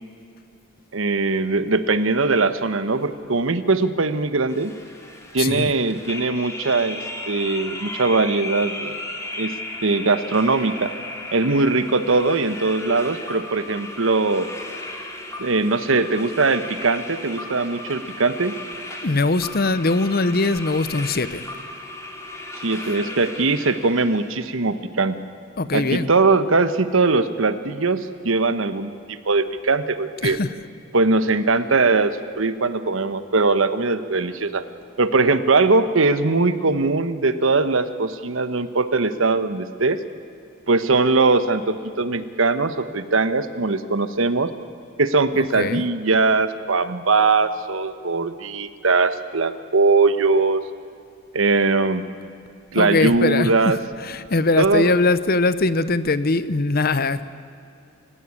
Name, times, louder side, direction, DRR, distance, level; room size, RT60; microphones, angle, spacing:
voice 1, 0.9-4.7 5.3-9.0 9.4-9.5 9.8-10.9 11.3-14.5 15.4-18.6 22.5-25.1 25.7-30.4 30.9-34.6 35.0-40.0 40.7-44.5 45.0-50.6 51.3-52.0 52.7-53.8 54.6-54.9, right 3 dB, 75° right, 11 dB, 1.1 m, -20 dB
sound 1, 4.5-24.3, left 2 dB, 15° left, 2.6 m, -35 dB
voice 2, 5.4-5.7 19.0-21.5 25.6-26.1 30.2-30.5 45.3-45.8 52.8-53.8 54.0-57.2, left 3 dB, 50° left, 14 dB, 0.8 m, -21 dB
29.0 x 16.0 x 8.6 m, 2.4 s
head